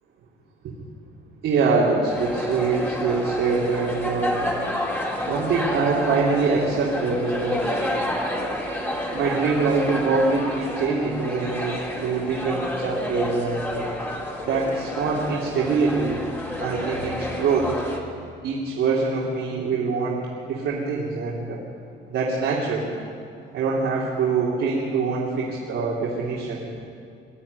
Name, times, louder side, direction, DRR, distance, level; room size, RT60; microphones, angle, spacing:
voice 1, 1.4-4.4 5.3-7.6 9.1-13.9 14.5-16.2 16.6-17.7 18.4-21.6 22.1-22.9 23.5-26.8, right 4 dB, 80° right, -5 dB, 3.3 m, -24 dB
sound 1, 2.1-18.0, left 1 dB, 10° left, 2.6 m, -30 dB
22.0 x 12.5 x 9.7 m, 2.4 s
cardioid pair, 165°, 21 cm